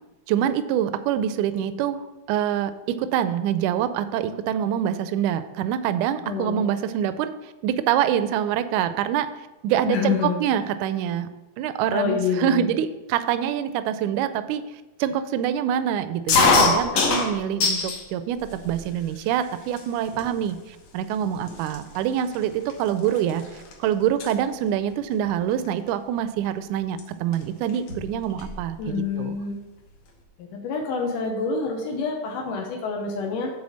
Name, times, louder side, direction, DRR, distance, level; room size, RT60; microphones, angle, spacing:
voice 1, 0.3-2.0 2.3-7.3 7.6-9.3 9.6-11.3 11.6-14.6 15.0-29.4, right 10 dB, 80° right, 11 dB, 1.9 m, -25 dB
voice 2, 6.2-6.6 9.9-10.4 11.9-12.7 28.8-29.6 30.4-33.5, left 5 dB, 85° left, 0 dB, 2.6 m, -27 dB
sound 1, 16.3-18.0 18.4-19.1 19.8-19.9 20.1-20.5 21.1-21.2 21.5-23.7 24.0-24.3 25.6-25.9 27.0-27.1 27.3-27.4 27.7-28.6, left 4 dB, 60° left, 2.2 m, -23 dB
9.6 x 4.2 x 6.4 m, 1.0 s
omnidirectional pair, 3.6 m